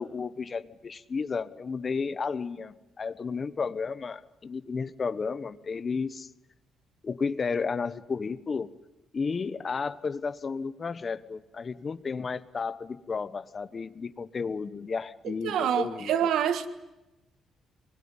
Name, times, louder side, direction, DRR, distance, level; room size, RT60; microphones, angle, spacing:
voice 1, 0.0-6.3 7.0-8.7 9.1-16.1, left 5 dB, 40° left, 1.1 m, -32 dB
voice 2, 15.2-16.7, right 9 dB, 80° right, 1.6 m, -27 dB
24.5 x 21.0 x 9.8 m
cardioid pair, 90°, 0 cm